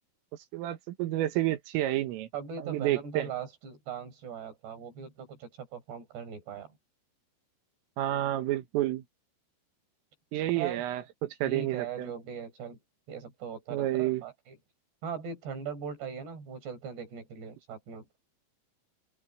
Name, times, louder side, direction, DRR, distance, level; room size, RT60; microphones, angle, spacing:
voice 1, 0.5-2.3 2.6-3.3 8.0-9.0 10.3-12.1 13.7-14.2, right 14 dB, 80° right, 4.1 m, -30 dB
voice 2, 2.3-6.7 10.6-10.8 11.4-12.8 13.1-14.6 15.0-18.1, right 7 dB, 55° right, 6.8 m, -40 dB
open air
omnidirectional pair, 6.0 m